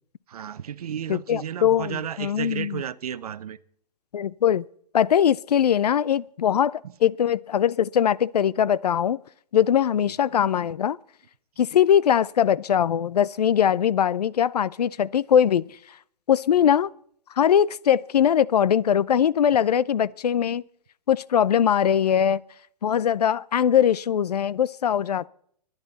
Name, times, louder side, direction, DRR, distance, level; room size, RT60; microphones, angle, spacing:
voice 1, 0.3-3.6 10.0-10.1 16.5-16.7, right 9 dB, 65° right, 0.8 m, -33 dB
voice 2, 1.1-2.8 4.1-4.6 4.9-9.2 9.5-11.0 11.6-15.7 16.3-16.9 17.4-20.6 21.1-22.4 22.8-25.3, left 9 dB, 75° left, 0.5 m, -21 dB
30.0 x 10.5 x 4.1 m
hypercardioid pair, 135°, 21 cm